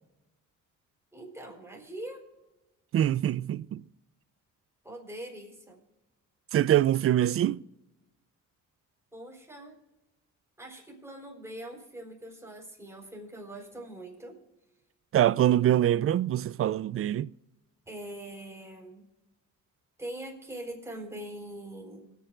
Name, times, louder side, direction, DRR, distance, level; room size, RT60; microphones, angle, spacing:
voice 1, 1.1-2.2 4.8-5.8 9.1-9.8 10.6-14.4 17.9-19.1 20.0-22.1, right 1 dB, 10° right, 4.3 m, -42 dB
voice 2, 2.9-3.8 6.5-7.6 15.1-17.3, right 12 dB, 45° right, 0.4 m, -24 dB
25.5 x 9.2 x 2.4 m
cardioid pair, 85°, 32 cm